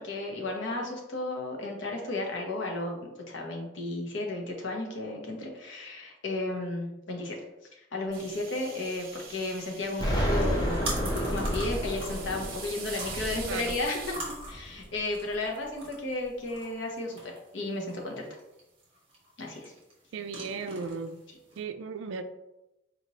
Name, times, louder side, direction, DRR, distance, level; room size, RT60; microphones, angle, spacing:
voice 1, 0.0-7.4 7.7-14.2 14.5-18.3 19.4-19.7, left 2 dB, 65° left, 1 dB, 0.8 m, -34 dB
sound 1, 8.1-14.2, right 5 dB, 50° right, 0.8 m, -43 dB
sound 2, 9.2-21.6, right 2 dB, 30° right, 1.2 m, -44 dB
Explosion, 10.0-14.8, equal, 20° left, 0.6 m, -31 dB
voice 2, 20.1-21.2 21.6-22.2, right 5 dB, 75° right, 8 dB, 0.4 m, -36 dB
4.1 x 3.0 x 2.8 m, 0.93 s
head